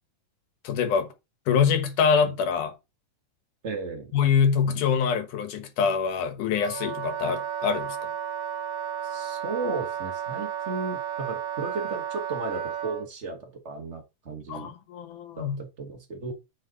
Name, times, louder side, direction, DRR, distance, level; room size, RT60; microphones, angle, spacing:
voice 1, 0.6-1.1 1.5-2.7 4.1-8.0 14.5-15.6, left 6 dB, 90° left, 2.8 m, -24 dB
voice 2, 3.6-4.1 9.0-14.7 15.4-16.3, right 3 dB, 45° right, 0.8 m, -34 dB
Wind instrument woodwind instrument, 6.5-13.1, right 9 dB, 70° right, 2.5 m, -33 dB
9.1 x 5.3 x 4.0 m
omnidirectional pair, 3.5 m